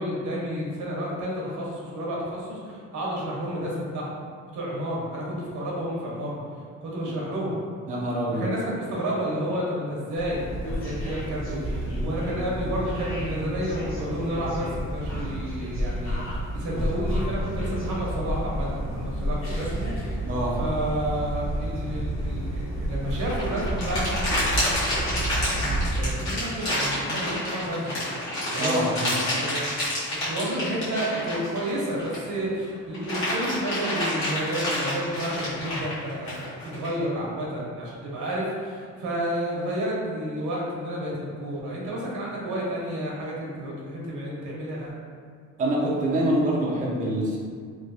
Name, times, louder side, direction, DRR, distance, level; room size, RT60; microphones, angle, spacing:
voice 1, 0.0-4.2 4.5-6.4 6.8-7.6 8.3-20.2 20.6-24.4 25.5-28.0 28.4-28.8 29.3-29.8 30.1-44.9, equal, 70° right, -4 dB, 0.9 m, -31 dB
voice 2, 7.9-8.5 20.2-20.6 28.6-29.1 45.6-47.4, right 1 dB, 25° right, -4 dB, 0.4 m, -25 dB
sound 1, 10.1-26.1, right 1 dB, 45° left, 0.9 m, -30 dB
sound 2, 23.1-32.3 32.7-36.9, left 1 dB, 60° left, 1.4 m, -29 dB
3.2 x 2.7 x 2.6 m, 2.1 s
cardioid pair, 160°, 31 cm